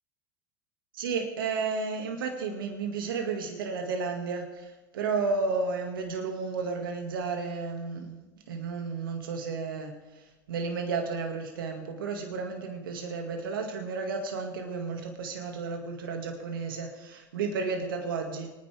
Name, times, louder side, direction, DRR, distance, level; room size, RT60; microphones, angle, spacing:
voice 1, 0.9-8.2 8.5-18.5, right 4 dB, 85° right, 3 dB, 2.0 m, -32 dB
24.5 x 9.9 x 3.5 m, 1.1 s
hypercardioid pair, 90°, 11 cm